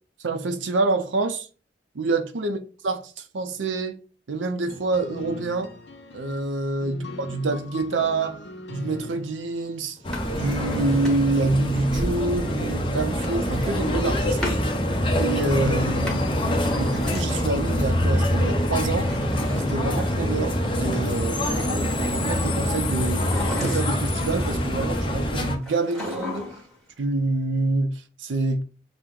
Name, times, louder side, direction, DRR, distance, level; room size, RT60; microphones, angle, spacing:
voice 1, 0.2-1.5 1.9-2.6 2.8-4.0 4.3-5.7 6.1-8.4 8.7-10.0 10.3-14.4 15.2-19.1 19.5-26.5 27.0-28.6, right 3 dB, 90° right, 0.6 m, -27 dB
sound 1, 4.6-10.1, left 3 dB, 65° left, 0.7 m, -40 dB
sound 2, 10.0-25.6, left 1 dB, 30° left, 0.7 m, -25 dB
Drawer open or close, 10.0-11.5 13.2-14.7 15.8-17.6 18.9-20.5 22.9-24.2 25.6-26.7 27.0-27.1, left 1 dB, 5° left, 1.2 m, -35 dB
5.9 x 2.1 x 3.6 m
head